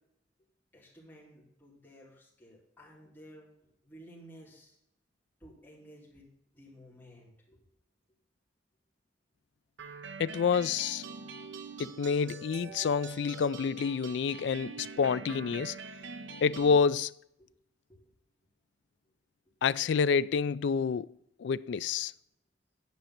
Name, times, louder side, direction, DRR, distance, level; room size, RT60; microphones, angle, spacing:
voice 1, 0.7-3.5 3.8-4.7 5.4-6.3 6.5-7.6 12.7-13.3 15.9-16.1 17.9-18.0, equal, 10° left, 3.7 m, -55 dB
sound 1, 9.8-16.8, right 5 dB, 70° right, 0.8 m, -44 dB
voice 2, 10.2-11.1 11.8-15.8 16.4-17.1 19.6-21.1 21.4-22.1, left 6 dB, 60° left, 0.3 m, -28 dB
10.5 x 5.4 x 5.8 m
head